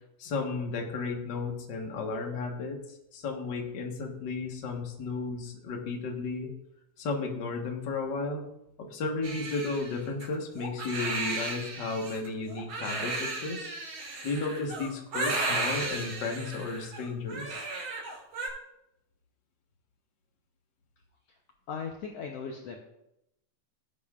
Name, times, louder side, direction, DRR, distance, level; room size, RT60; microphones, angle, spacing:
voice 1, 0.2-6.5 7.0-8.4 8.8-13.7 14.2-17.6, left 3 dB, 45° left, 1 dB, 1.7 m, -34 dB
Crying sobbing, 9.2-18.5, right 3 dB, 85° right, 4.1 m, -34 dB
voice 2, 21.7-22.8, left 6 dB, 65° left, 1 dB, 1.7 m, -37 dB
17.5 x 8.6 x 2.5 m, 0.85 s
omnidirectional pair, 3.4 m